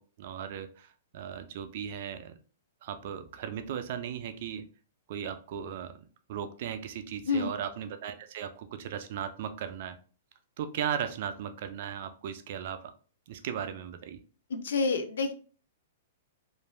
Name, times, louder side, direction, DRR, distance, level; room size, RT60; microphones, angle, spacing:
voice 1, 0.0-2.4 2.8-4.7 5.1-6.0 6.3-10.0 10.6-12.9 13.3-14.2, right 8 dB, 50° right, 9 dB, 0.4 m, -37 dB
voice 2, 14.5-15.3, left 4 dB, 80° left, 7 dB, 0.5 m, -28 dB
3.1 x 2.5 x 2.2 m, 0.39 s
hypercardioid pair, 160°, 0 cm